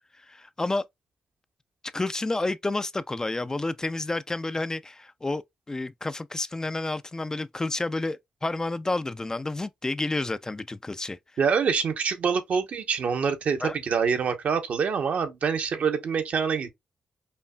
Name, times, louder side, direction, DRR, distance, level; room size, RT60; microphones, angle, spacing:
voice 1, 0.2-0.9 1.9-11.2 13.6-13.8, left 2 dB, 25° left, 0.3 m, -30 dB
voice 2, 11.4-16.7, right 6 dB, 70° right, 0.8 m, -25 dB
5.5 x 2.3 x 2.2 m
cardioid pair, 55°, 3 cm